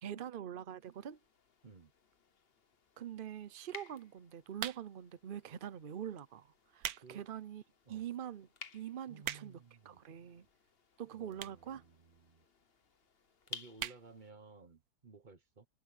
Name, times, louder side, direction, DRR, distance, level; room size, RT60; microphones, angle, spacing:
voice 1, 0.0-1.2 3.0-7.6 7.9-8.5 8.7-9.6 9.8-10.5 11.0-11.8, right 10 dB, 80° right, 0.4 m, -44 dB
sound 1, 0.8-14.3, left 5 dB, 40° left, 1.1 m, -56 dB
sound 2, 4.5-5.1 5.8-6.0 6.5-7.1 7.5-7.6 8.2-8.3 8.5-8.6 8.9-9.7 10.5-10.6 11.3-11.7 12.0-12.1 12.3-12.4 12.6-12.7 13.0-13.3 13.7-14.0 14.4-14.5 14.7-14.8, right 11 dB, 65° right, 1.2 m, -41 dB
voice 2, 9.1-10.0 11.1-12.4 13.5-15.7, right 4 dB, 30° right, 1.2 m, -57 dB
omnidirectional pair, 1.9 m